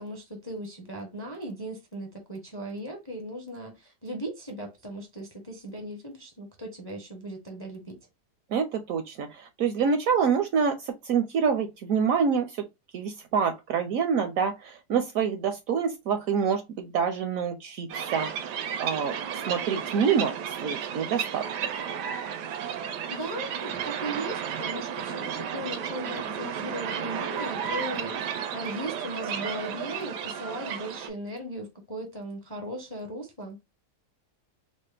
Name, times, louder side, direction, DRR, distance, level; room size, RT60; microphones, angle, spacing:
voice 1, 0.0-8.0 22.7-22.8 23.1-33.6, right 1 dB, 25° left, 0.5 m, -38 dB
voice 2, 8.5-12.6 12.9-20.3 20.6-21.5, right 6 dB, 70° right, 0.9 m, -27 dB
sound 1, 17.9-31.1, right 8 dB, 85° right, 1.3 m, -33 dB
4.1 x 2.1 x 3.3 m
omnidirectional pair, 1.8 m